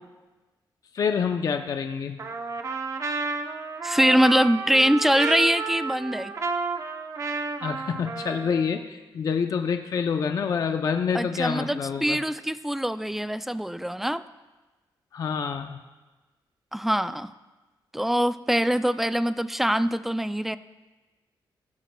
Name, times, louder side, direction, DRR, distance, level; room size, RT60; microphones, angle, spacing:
voice 1, 0.9-2.2 7.6-12.2 15.1-15.8, left 6 dB, 45° left, 6 dB, 0.5 m, -27 dB
Trumpet, 2.2-8.8, right 4 dB, 40° right, 0.7 m, -31 dB
voice 2, 3.8-6.3 11.1-14.2 16.7-17.3 17.9-20.6, equal, 5° right, 13 dB, 0.3 m, -23 dB
15.5 x 15.5 x 2.2 m, 1.2 s
wide cardioid pair, 155°, 8 cm